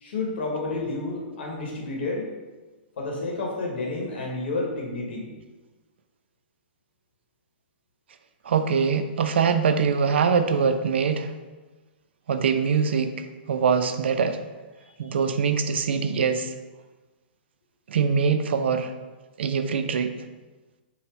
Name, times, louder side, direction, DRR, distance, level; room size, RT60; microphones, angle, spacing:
voice 1, 0.0-2.3 3.0-5.3 15.0-15.1, left 2 dB, 70° left, -1 dB, 1.1 m, -30 dB
voice 2, 8.5-11.3 12.3-14.4 15.0-16.5 17.9-18.9 19.4-20.1, right 6 dB, 85° right, 9 dB, 0.4 m, -23 dB
4.1 x 2.1 x 4.3 m, 1.2 s
hypercardioid pair, 155°, 6 cm